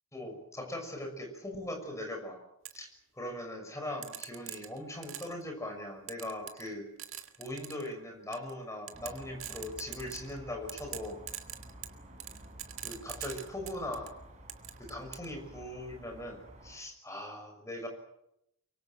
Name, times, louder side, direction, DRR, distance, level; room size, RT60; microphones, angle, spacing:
voice 1, 0.1-2.4 2.7-2.9 3.1-6.9 7.4-11.2 12.8-14.1 14.8-17.9, left 1 dB, 15° left, 4 dB, 6.3 m, -40 dB
sound 1, 2.6-2.8 4.0-5.4 6.1-6.7 7.0-7.9 8.3-8.5 8.9-10.4 10.7-14.1 14.5-15.3, right 12 dB, 65° right, 1.9 m, -42 dB
sound 2, 8.9-16.8, right 1 dB, 35° right, 5.9 m, -51 dB
24.0 x 23.5 x 7.7 m, 0.82 s
head